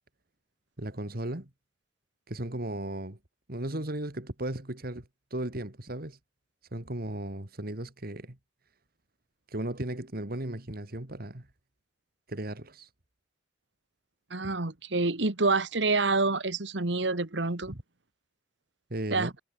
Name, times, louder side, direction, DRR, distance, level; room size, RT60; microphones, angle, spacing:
voice 1, 0.8-1.5 2.3-3.2 3.5-6.2 6.7-8.4 9.5-11.5 12.3-12.9 14.4-14.5 17.7-17.8 18.9-19.3, right 1 dB, 55° right, 2.4 m, -36 dB
voice 2, 14.3-17.7 19.1-19.3, right 3 dB, 75° right, 1.8 m, -27 dB
head